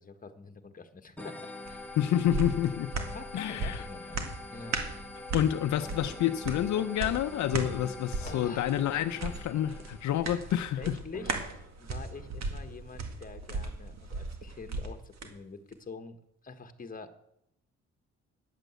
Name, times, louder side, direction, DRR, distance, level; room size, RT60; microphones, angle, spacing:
voice 1, 0.0-1.9 3.1-4.9 8.2-8.7 10.2-10.4 10.8-17.1, left 4 dB, 30° left, 1.4 m, -46 dB
sound 1, 1.2-10.5, left 2 dB, 5° left, 1.5 m, -45 dB
sound 2, 1.7-15.3 15.7-15.8, right 3 dB, 60° right, 1.9 m, -38 dB
voice 2, 2.0-2.9 3.3-3.8 5.3-11.0, left 11 dB, 70° left, 0.7 m, -29 dB
sound 3, 4.1-4.2 4.5-5.1 5.4-8.6 8.8-12.5 13.4-13.9, right 1 dB, 15° right, 4.6 m, -52 dB
10.5 x 8.2 x 8.0 m
cardioid pair, 90°, 30 cm